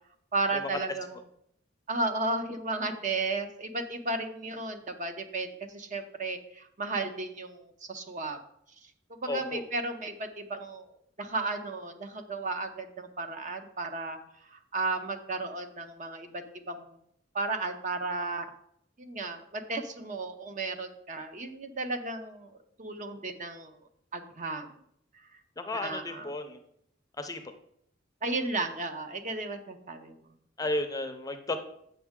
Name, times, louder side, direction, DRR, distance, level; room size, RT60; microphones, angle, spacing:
voice 1, 0.3-1.2 1.9-8.4 9.1-10.9 11.2-14.2 14.4-17.0 17.3-18.5 19.0-22.5 22.8-23.7 24.1-24.7 25.8-26.3 28.2-30.2, right 3 dB, 40° right, 7 dB, 0.7 m, -34 dB
voice 2, 9.3-9.6 25.6-26.6 27.2-27.4 30.6-31.6, left 2 dB, 20° left, 7 dB, 0.6 m, -33 dB
8.3 x 6.3 x 3.6 m, 0.72 s
head